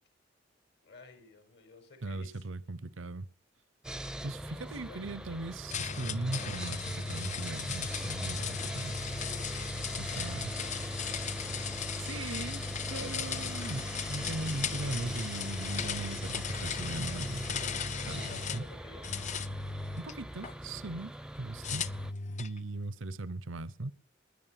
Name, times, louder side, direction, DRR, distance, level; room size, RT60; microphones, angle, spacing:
voice 1, 0.8-2.5 4.4-5.1 9.6-10.8 17.1-17.2 18.1-19.1, left 3 dB, 60° left, 5.3 m, -53 dB
voice 2, 2.0-3.3 4.2-9.0 9.5-9.6 10.0-10.5 12.0-17.6 18.1-18.6 20.0-21.1 21.4-21.9 22.4-23.9, right 2 dB, 85° right, 0.9 m, -39 dB
Sawing, 3.8-22.1, right 1 dB, 5° right, 0.7 m, -42 dB
sound 1, 5.7-18.7 19.0-20.5 21.6-22.6, left 5 dB, 40° left, 0.7 m, -37 dB
20.5 x 9.7 x 5.9 m
head